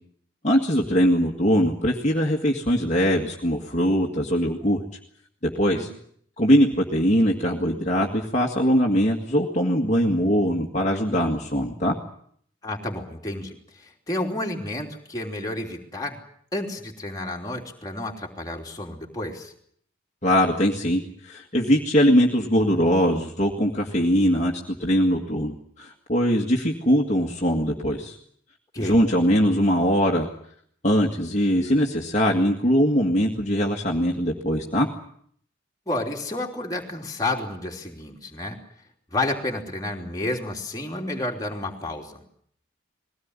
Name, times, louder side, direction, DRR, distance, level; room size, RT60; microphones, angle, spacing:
voice 1, 0.4-4.8 5.4-5.9 6.4-12.0 20.2-28.2 28.8-30.3 30.8-34.9, equal, 35° left, -1 dB, 1.9 m, -21 dB
voice 2, 12.6-16.2 16.5-19.5 28.7-29.0 35.9-38.6 39.1-42.2, left 2 dB, 20° left, 0 dB, 3.2 m, -30 dB
21.5 x 17.5 x 9.7 m, 0.65 s
head